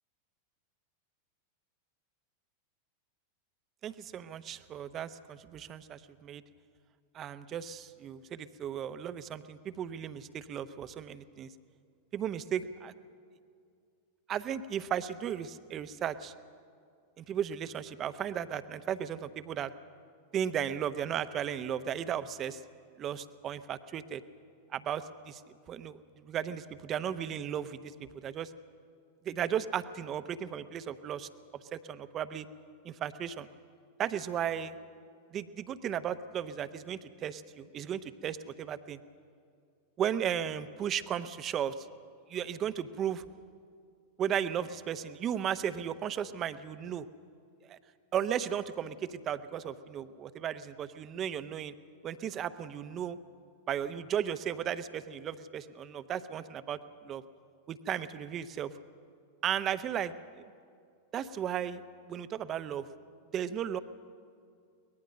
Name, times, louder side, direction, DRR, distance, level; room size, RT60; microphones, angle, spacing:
voice 1, 3.8-6.4 7.1-11.5 12.1-12.9 14.3-16.3 17.2-19.7 20.3-22.6 23.0-24.2 24.7-25.4 25.7-26.0 26.2-28.5 29.2-31.3 31.7-32.5 32.8-33.5 34.0-34.8 35.3-39.0 40.0-41.9 42.3-43.2 44.2-47.0 47.7-47.8 48.1-51.7 52.0-53.2 53.7-57.2 57.7-58.7 59.4-60.1 61.1-61.8 62.1-62.8 63.3-63.8, right 9 dB, 30° right, 13 dB, 0.8 m, -35 dB
23.0 x 19.0 x 6.5 m, 2.3 s
figure-of-eight pair, 90°, 0 cm